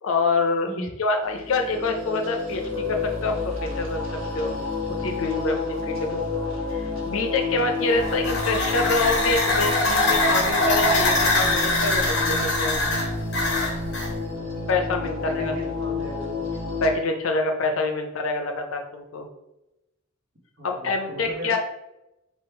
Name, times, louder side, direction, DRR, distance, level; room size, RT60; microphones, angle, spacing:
voice 1, 0.0-0.7 1.0-4.0 4.3-4.6 5.0-6.2 6.7-13.0 14.7-15.5 16.8-19.3 20.6-21.6, left 3 dB, 75° left, 4 dB, 0.6 m, -26 dB
voice 2, 0.6-0.9 15.0-16.4 20.6-21.6, equal, 55° right, -1 dB, 1.1 m, -36 dB
sound 1, 1.2-16.9, left 3 dB, 90° right, 1.4 m, -30 dB
sound 2, 7.9-14.1, left 2 dB, 55° left, 0.9 m, -23 dB
3.6 x 2.4 x 4.3 m, 0.93 s
head